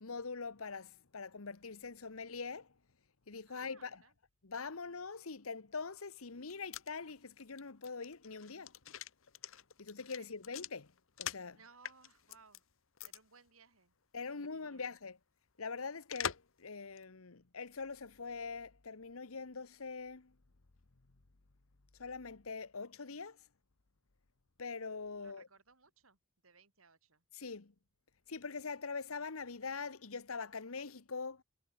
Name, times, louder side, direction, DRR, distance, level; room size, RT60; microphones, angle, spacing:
voice 1, 0.0-2.7 3.3-4.0 4.4-8.7 9.8-10.9 11.2-11.6 14.1-15.2 15.6-20.3 22.0-23.4 24.6-25.5 27.3-27.7 28.3-31.4, left 4 dB, 85° left, 1.2 m, -43 dB
voice 2, 3.5-4.1 10.2-10.3 11.5-12.7 13.0-13.9 14.3-14.8 25.2-27.2, right 5 dB, 80° right, 5.1 m, -63 dB
sound 1, 6.3-11.5 11.8-12.6 13.0-13.2 13.5-13.6 16.1-16.6 17.0-17.1, left 8 dB, 65° left, 1.1 m, -44 dB
head